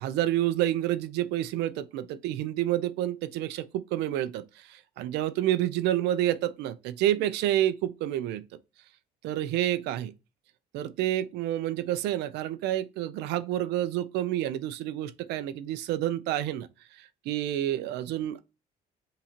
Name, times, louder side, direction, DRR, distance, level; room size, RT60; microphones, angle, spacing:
voice 1, 0.0-8.4 9.2-10.1 10.7-18.4, right 13 dB, 85° right, 0.5 m, -29 dB
3.7 x 2.8 x 4.2 m
cardioid pair, 110°, 17 cm